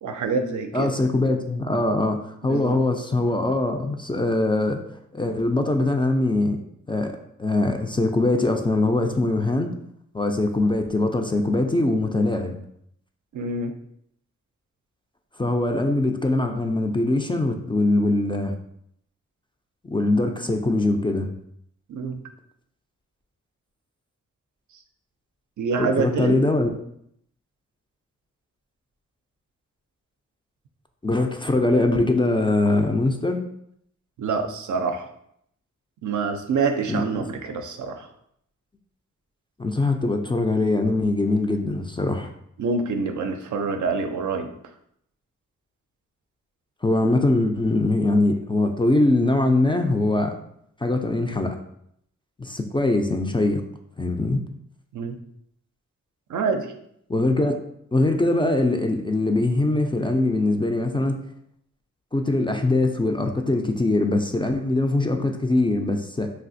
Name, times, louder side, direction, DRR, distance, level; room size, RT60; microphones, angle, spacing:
voice 1, 0.0-0.9 2.4-2.8 13.3-13.7 21.9-22.2 25.6-26.4 34.2-35.1 36.0-38.1 42.6-44.5 54.9-55.2 56.3-56.7, right 4 dB, 65° right, 6 dB, 0.5 m, -26 dB
voice 2, 0.7-4.8 5.1-6.6 6.9-9.7 10.1-12.6 15.4-18.5 19.8-21.3 25.8-26.7 31.0-33.4 36.9-37.2 39.6-42.3 46.8-50.3 50.8-51.5 52.4-53.6 54.0-54.4 57.1-57.6 57.9-61.2 62.1-66.3, left 2 dB, 15° left, 3 dB, 0.3 m, -22 dB
3.3 x 2.4 x 2.6 m, 0.72 s
cardioid pair, 50°, 32 cm